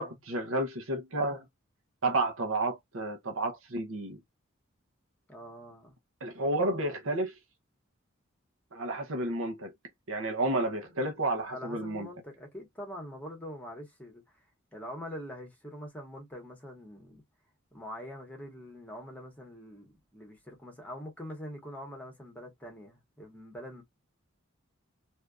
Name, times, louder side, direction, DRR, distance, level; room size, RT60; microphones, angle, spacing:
voice 1, 0.0-1.4 2.0-4.2 6.2-7.3 8.7-9.7 10.1-12.1, right 2 dB, 75° right, 0.8 m, -31 dB
voice 2, 5.3-5.9 11.5-14.4 14.7-17.2 17.7-23.8, equal, 10° left, 1.5 m, -44 dB
3.4 x 2.8 x 2.4 m
head